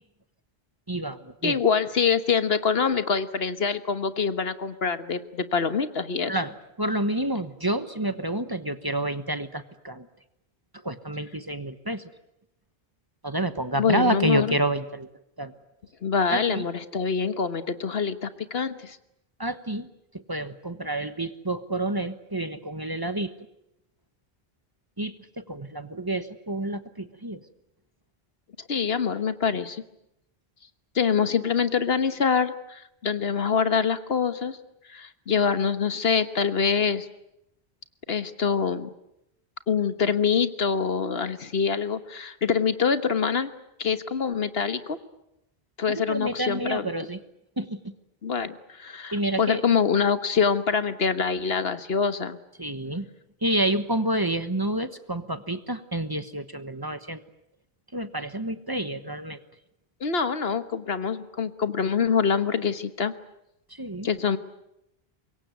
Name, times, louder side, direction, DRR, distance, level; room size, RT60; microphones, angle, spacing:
voice 1, 0.9-1.6 6.3-6.5 6.8-10.1 10.8-12.0 13.2-15.1 15.4-15.5 16.3-16.6 19.4-19.9 20.3-23.3 25.0-27.4 45.9-47.2 47.6-47.9 49.1-49.6 52.6-53.1 53.4-57.2 57.9-59.4 63.8-64.1, right 1 dB, 20° right, 11 dB, 1.2 m, -29 dB
voice 2, 1.4-6.4 13.8-14.6 16.0-19.0 28.7-29.8 30.9-34.6 34.9-37.1 38.1-38.9 39.7-43.5 43.8-45.0 45.8-46.9 48.2-52.4 60.0-63.1 64.0-64.4, left 6 dB, 75° left, 11 dB, 1.5 m, -25 dB
25.0 x 22.5 x 9.3 m, 0.83 s
omnidirectional pair, 1.0 m